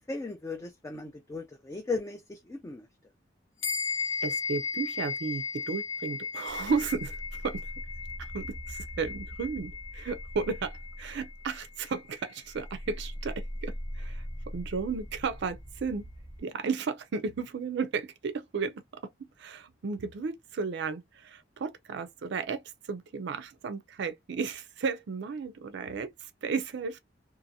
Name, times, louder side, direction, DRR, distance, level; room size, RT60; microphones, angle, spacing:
voice 1, 0.0-2.9, left 3 dB, 15° left, 0.3 m, -36 dB
sound 1, 3.6-13.3, left 5 dB, 80° left, 0.8 m, -37 dB
voice 2, 4.2-7.6 8.2-14.2 14.5-16.1 16.4-18.8 19.4-22.6 22.9-27.0, right 5 dB, 60° right, 0.4 m, -34 dB
sound 2, 6.5-12.0 12.4-16.4, equal, 15° right, 0.8 m, -42 dB
2.6 x 2.5 x 2.7 m
head